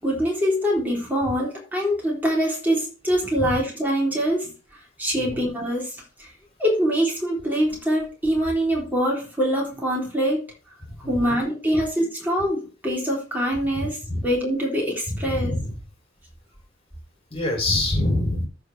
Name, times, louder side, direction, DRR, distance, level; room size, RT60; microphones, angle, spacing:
voice 1, 0.0-4.5 5.0-6.3 6.6-10.4 11.1-13.9 14.2-15.5, equal, 10° right, -4 dB, 3.6 m, -24 dB
voice 2, 10.8-11.3 11.7-11.8 13.7-14.2 15.1-15.7 17.3-18.5, left 1 dB, 30° left, 0 dB, 3.1 m, -26 dB
14.5 x 4.9 x 3.4 m, 0.34 s
head